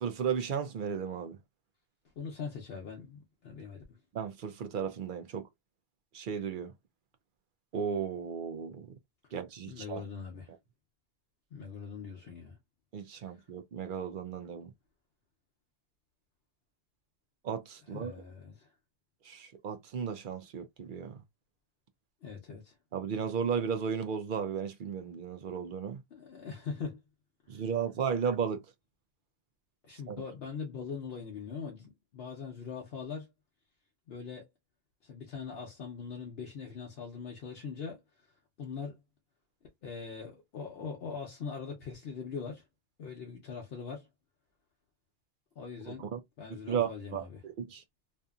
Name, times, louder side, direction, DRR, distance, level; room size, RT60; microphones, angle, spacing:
voice 1, 0.0-1.4 4.1-5.4 6.1-6.7 7.7-8.9 9.3-10.0 12.9-14.7 17.4-18.1 19.3-21.2 22.9-26.0 27.5-28.6 30.1-30.2 46.0-46.2 46.7-47.8, right 7 dB, 60° right, 0.6 m, -34 dB
voice 2, 2.2-4.0 9.7-10.5 11.5-12.6 13.2-13.3 17.9-18.7 22.2-22.7 26.1-27.0 27.5-27.6 29.9-33.3 34.1-34.5 35.0-38.0 38.6-39.0 39.8-42.6 43.0-44.1 45.6-46.1 46.4-47.4, left 5 dB, 65° left, 0.9 m, -41 dB
2.7 x 2.5 x 2.3 m
omnidirectional pair, 1.1 m